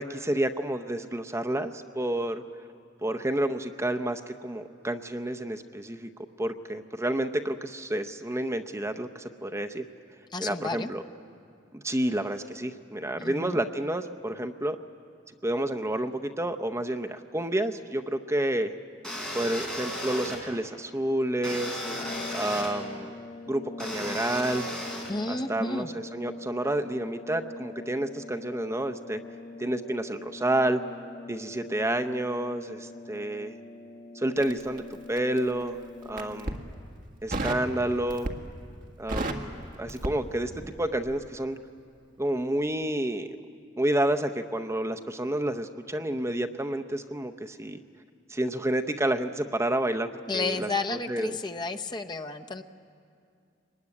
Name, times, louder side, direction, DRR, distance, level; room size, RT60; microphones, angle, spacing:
voice 1, 0.0-2.4 3.0-6.1 6.4-9.8 10.4-11.0 11.7-14.8 15.4-18.7 19.3-21.8 22.3-23.1 23.5-24.7 25.3-29.2 29.6-30.8 31.3-33.5 34.1-35.8 36.1-36.6 37.2-38.3 39.0-39.5 39.8-41.6 42.2-43.4 43.8-47.8 48.3-51.4, right 1 dB, 15° right, 7 dB, 0.7 m, -29 dB
voice 2, 10.3-10.9 13.2-13.6 25.1-25.9 50.3-52.6, left 3 dB, 25° left, 6 dB, 0.8 m, -32 dB
sound 1, 19.0-20.4 21.4-22.7 23.8-25.1, equal, 5° left, 3.7 m, -35 dB
sound 2, 21.7-36.9, left 3 dB, 40° left, 1.4 m, -43 dB
Crackle, 34.4-35.5 36.0-36.6 37.3-37.7 38.1-38.6 38.9-40.8 41.0-41.3, right 2 dB, 45° right, 1.7 m, -33 dB
24.0 x 20.5 x 9.7 m, 2.3 s
head